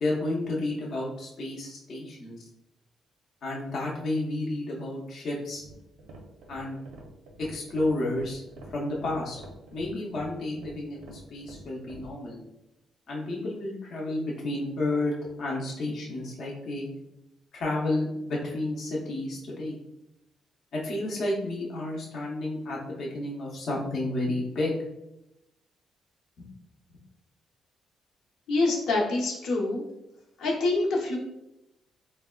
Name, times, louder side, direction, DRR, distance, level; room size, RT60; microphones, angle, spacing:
voice 1, 0.0-2.4 3.4-5.6 6.5-6.8 7.4-8.4 8.7-9.4 9.7-12.4 13.1-15.1 15.4-16.9 17.5-19.8 20.7-24.7 26.4-26.5, left 2 dB, 50° left, -4 dB, 0.6 m, -31 dB
sound 1, 5.6-12.1, right 1 dB, 85° right, 0.6 m, -47 dB
voice 2, 28.5-29.8 30.4-31.2, left 2 dB, 85° left, -3 dB, 0.7 m, -26 dB
3.9 x 2.1 x 2.2 m, 0.88 s
cardioid pair, 175°, 0 cm